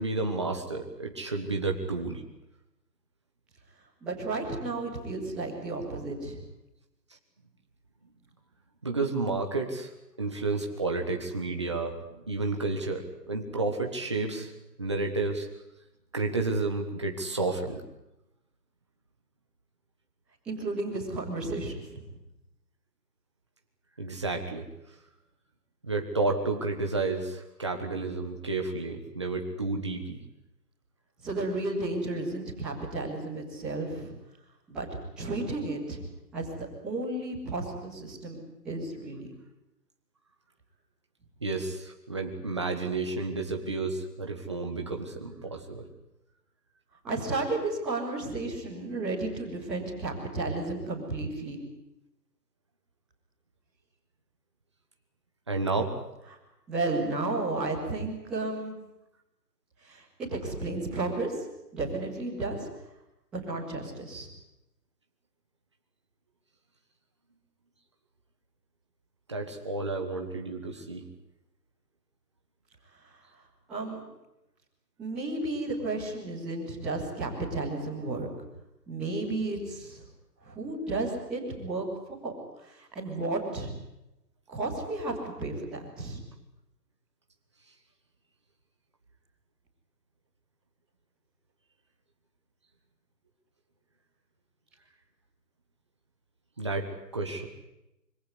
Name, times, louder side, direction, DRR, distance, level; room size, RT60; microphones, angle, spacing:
voice 1, 0.0-2.2 8.8-9.9 10.2-14.5 14.8-15.5 16.1-17.8 24.0-24.7 25.8-30.2 41.4-45.9 55.5-55.9 69.3-71.1 96.6-97.5, right 3 dB, 15° right, 3 dB, 1.5 m, -31 dB
voice 2, 4.0-6.4 20.4-22.0 31.2-34.1 34.7-34.9 35.2-36.0 36.3-36.5 36.8-39.3 47.0-51.6 56.7-58.7 59.8-61.3 61.7-62.7 63.4-64.3 73.7-74.0 75.0-78.3 78.9-80.0 80.4-81.9 82.2-82.3 82.6-83.7 84.5-86.2, right 2 dB, ahead, -12 dB, 1.9 m, -33 dB
24.5 x 18.0 x 9.8 m, 0.91 s
hypercardioid pair, 180°, 50 cm